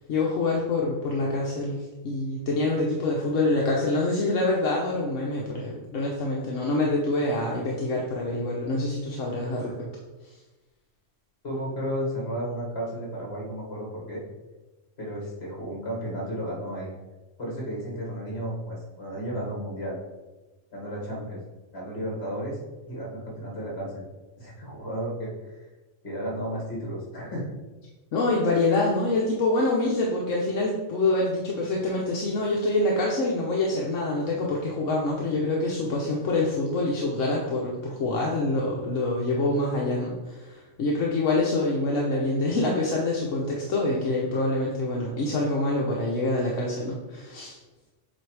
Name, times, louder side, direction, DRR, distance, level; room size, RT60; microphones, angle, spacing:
voice 1, 0.1-9.7 28.1-47.6, left 2 dB, 75° left, -2 dB, 1.2 m, -26 dB
voice 2, 11.4-14.2 15.0-16.9 17.4-20.0 20.7-21.4 21.7-22.6 22.9-24.1 24.4-25.3 26.0-27.6, equal, 55° left, -3 dB, 2.1 m, -33 dB
7.7 x 2.6 x 4.7 m, 1.1 s
omnidirectional pair, 1.3 m